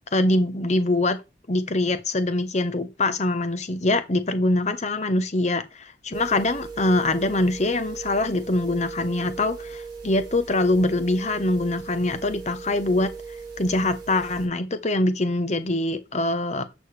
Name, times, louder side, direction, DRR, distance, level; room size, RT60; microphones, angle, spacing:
voice 1, 0.1-1.2 1.5-13.1 13.6-16.7, left 2 dB, 40° left, 0.9 m, -23 dB
sound 1, 6.1-14.5, right 5 dB, 25° right, 4.5 m, -38 dB
11.5 x 6.5 x 3.3 m
head